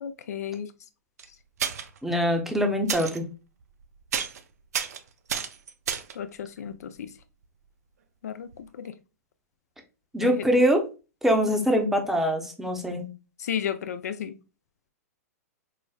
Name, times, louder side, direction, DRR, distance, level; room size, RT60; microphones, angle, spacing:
voice 1, 0.0-0.7 6.2-7.1 8.2-8.9 10.2-10.5 13.4-14.3, left 8 dB, 70° left, 12 dB, 0.4 m, -33 dB
sound 1, 1.2-1.3 1.6-2.0 2.9-3.2 3.6-3.8 4.1-4.4 4.7-6.2 8.5-8.6 8.8-8.9, right 7 dB, 70° right, 0.4 m, -30 dB
voice 2, 2.0-3.2 10.1-10.8 11.2-13.1, equal, 5° right, 3 dB, 0.7 m, -23 dB
4.8 x 2.0 x 2.3 m, 0.31 s
hypercardioid pair, 115°, 9 cm